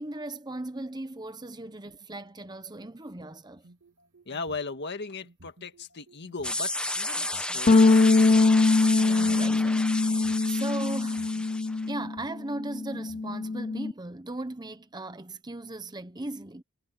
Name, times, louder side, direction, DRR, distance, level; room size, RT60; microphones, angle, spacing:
voice 1, 0.0-3.7 8.9-11.2 11.8-16.6, right 2 dB, 20° right, 1.1 m, -38 dB
sound 1, 3.6-4.7 5.2-6.5 7.2-8.5 9.1-10.5 11.0-12.4 12.9-13.6, right 1 dB, 60° right, 3.2 m, -55 dB
voice 2, 4.3-7.8, left 4 dB, 50° left, 1.9 m, -37 dB
sound 2, 6.4-11.8, left 1 dB, 5° left, 1.3 m, -33 dB
sound 3, 7.7-12.2 12.5-13.9, left 3 dB, 30° left, 0.6 m, -22 dB
head